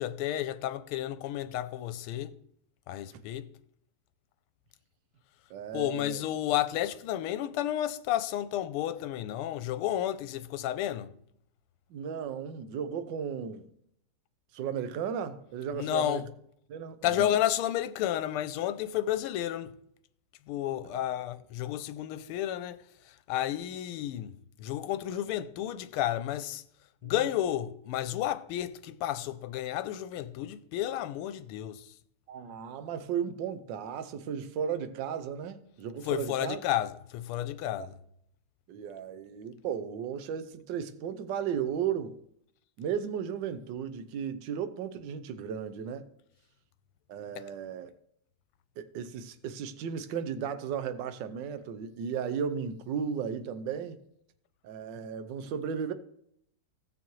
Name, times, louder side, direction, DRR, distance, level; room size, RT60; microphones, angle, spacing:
voice 1, 0.0-2.3 2.9-3.5 5.7-11.1 15.7-16.3 17.0-19.7 20.5-26.6 27.0-31.9 36.0-38.0 47.3-47.4, left 12 dB, 85° left, 1.5 m, -32 dB
voice 2, 5.5-6.3 11.9-13.7 14.5-16.2 16.7-17.4 20.9-21.0 25.1-25.2 27.0-27.2 32.3-36.6 37.7-37.9 38.7-42.2 42.8-46.0 47.1-47.9 48.8-54.0 54.6-55.9, right 7 dB, 65° right, 1.3 m, -35 dB
16.5 x 7.0 x 3.1 m
omnidirectional pair, 2.4 m